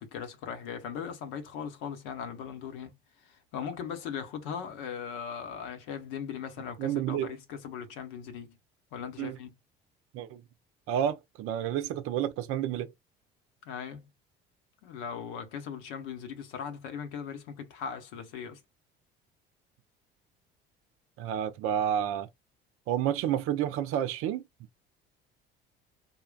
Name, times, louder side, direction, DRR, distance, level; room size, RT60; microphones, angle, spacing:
voice 1, 0.0-2.9 3.2-8.6 8.9-9.5 13.6-14.1 14.8-18.6, left 7 dB, 60° left, 1.0 m, -39 dB
voice 2, 6.8-7.3 9.2-9.3 10.1-10.4 10.9-12.9 21.2-22.3 22.9-24.4, right 10 dB, 50° right, 0.6 m, -30 dB
3.8 x 2.2 x 2.3 m
figure-of-eight pair, 55°, 29 cm